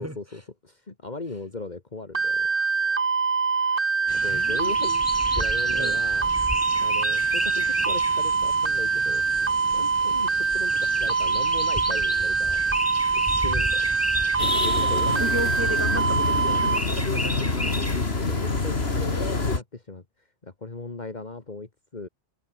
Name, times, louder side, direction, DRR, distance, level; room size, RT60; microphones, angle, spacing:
voice 1, 0.0-2.5 4.1-4.9 5.3-6.3 6.8-12.8 13.1-13.9 14.5-15.2 18.3-20.0 20.4-22.1, left 3 dB, 45° left, 1.9 m, -38 dB
sound 1, 2.2-16.8, right 5 dB, 55° right, 1.7 m, -24 dB
sound 2, 4.1-19.6, left 1 dB, 15° left, 3.7 m, -34 dB
voice 2, 4.3-5.0 5.7-6.0 14.8-18.0, equal, 15° right, 3.9 m, -34 dB
sound 3, 14.4-19.6, left 3 dB, 75° left, 2.8 m, -26 dB
omnidirectional pair, 1.1 m